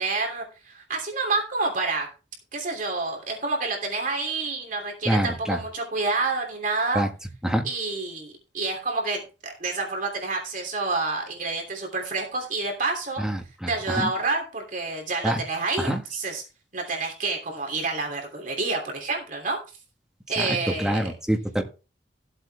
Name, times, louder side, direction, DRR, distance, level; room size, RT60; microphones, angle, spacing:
voice 1, 0.0-2.1 2.5-7.0 7.6-13.2 13.7-16.4 16.7-19.6 20.3-21.1, right 3 dB, 50° right, 1 dB, 3.0 m, -28 dB
voice 2, 5.1-5.6 7.0-7.1 7.4-7.6 13.2-14.1 15.2-15.4 15.8-16.0 20.4-20.5 20.8-21.6, equal, 5° right, 3 dB, 1.7 m, -25 dB
14.5 x 8.0 x 3.5 m, 0.32 s
head